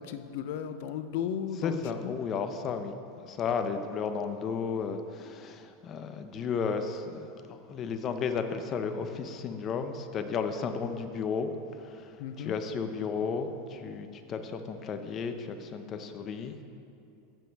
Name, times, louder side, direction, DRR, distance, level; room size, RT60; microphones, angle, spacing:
voice 1, 0.0-2.1 12.2-12.6, left 8 dB, 65° left, 10 dB, 0.6 m, -35 dB
voice 2, 1.6-2.9 3.2-11.5 11.8-16.6, left 5 dB, 35° left, 7 dB, 0.7 m, -33 dB
15.0 x 7.3 x 3.5 m, 2.6 s
supercardioid pair, 135°, 0 cm